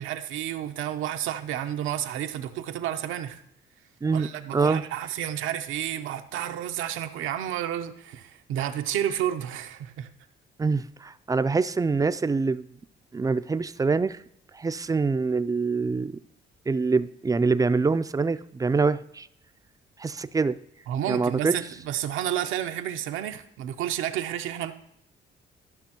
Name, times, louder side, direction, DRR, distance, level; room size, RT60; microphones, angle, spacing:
voice 1, 0.0-3.4 4.1-10.1 20.9-24.7, right 11 dB, 90° right, 8 dB, 0.7 m, -31 dB
voice 2, 4.5-4.8 10.6-12.7 13.1-14.2 14.5-16.2 16.7-19.3 20.0-20.6 21.1-21.5, right 4 dB, 20° right, 13 dB, 0.3 m, -25 dB
13.0 x 6.1 x 2.9 m, 0.75 s
cardioid pair, 90°, 20 cm